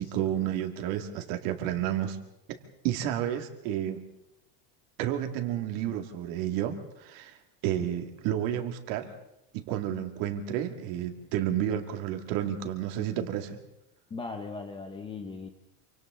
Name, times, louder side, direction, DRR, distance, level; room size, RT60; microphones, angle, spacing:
voice 1, 0.0-2.2 2.8-4.0 5.0-7.4 7.6-9.1 9.5-13.6, right 11 dB, 50° right, 5 dB, 2.5 m, -31 dB
voice 2, 14.1-15.5, left 4 dB, 10° left, 6 dB, 0.9 m, -38 dB
28.0 x 25.5 x 3.9 m, 0.86 s
cardioid pair, 180°, 46 cm